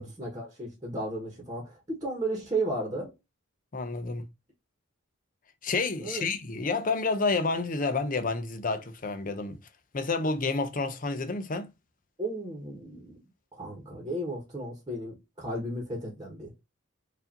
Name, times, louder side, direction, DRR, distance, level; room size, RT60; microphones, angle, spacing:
voice 1, 0.0-3.1 6.0-6.3 12.2-13.2 13.5-16.5, right 2 dB, 20° right, 1.2 m, -34 dB
voice 2, 3.7-4.3 5.6-9.6 9.9-11.7, left 3 dB, 40° left, 0.6 m, -29 dB
4.7 x 2.6 x 2.8 m
head